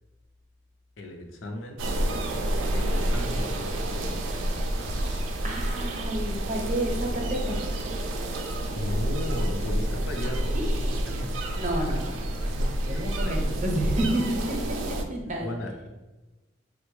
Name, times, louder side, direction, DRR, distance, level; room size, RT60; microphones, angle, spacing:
voice 1, 1.0-1.8 2.7-5.2 8.7-11.3 12.9-13.4 15.4-15.9, left 1 dB, 80° left, 3 dB, 0.5 m, -36 dB
sound 1, 1.8-15.0, right 1 dB, 90° right, 0.4 m, -29 dB
voice 2, 5.4-7.6 10.5-11.2 11.6-14.6 15.1-15.5, right 1 dB, 40° right, 1 dB, 0.6 m, -30 dB
3.6 x 2.1 x 3.1 m, 1.1 s
head